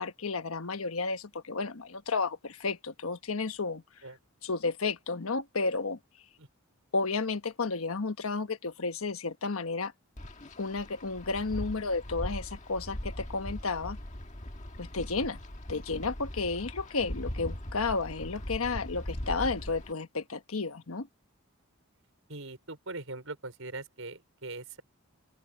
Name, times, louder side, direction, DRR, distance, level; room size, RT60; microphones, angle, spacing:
voice 1, 0.0-3.8 4.4-6.0 6.9-9.9 10.6-14.0 14.8-15.4 15.7-21.1, left 4 dB, 85° left, 1.2 m, -32 dB
Wind, 10.2-19.9, left 1 dB, 35° left, 1.7 m, -40 dB
voice 2, 22.3-24.8, right 2 dB, 75° right, 5.1 m, -41 dB
open air
head